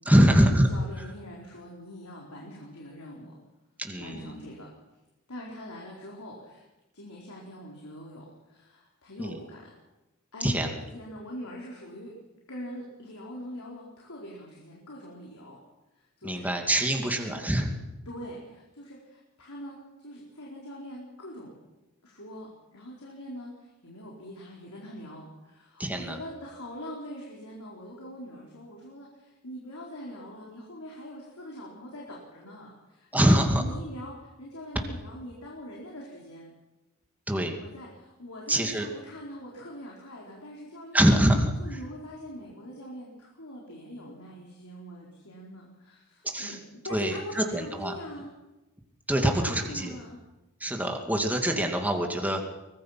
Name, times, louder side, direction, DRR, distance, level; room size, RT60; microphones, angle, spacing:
voice 1, 0.0-0.7 1.0-1.1 3.8-4.4 9.2-9.4 10.4-10.8 16.2-17.7 25.8-26.2 33.1-33.6 37.3-37.6 38.5-38.9 40.9-41.5 46.2-46.6 46.9-47.9 49.1-49.9 50.6-52.4, equal, 5° right, 2 dB, 2.5 m, -24 dB
voice 2, 0.7-3.3 4.0-4.7 5.3-6.6 6.9-9.7 10.3-12.2 12.5-15.6 16.0-17.4 18.1-21.6 22.0-36.5 37.5-41.1 41.6-48.3 49.2-50.2, equal, 75° left, -3 dB, 4.5 m, -43 dB
23.5 x 21.0 x 5.9 m, 1.0 s
head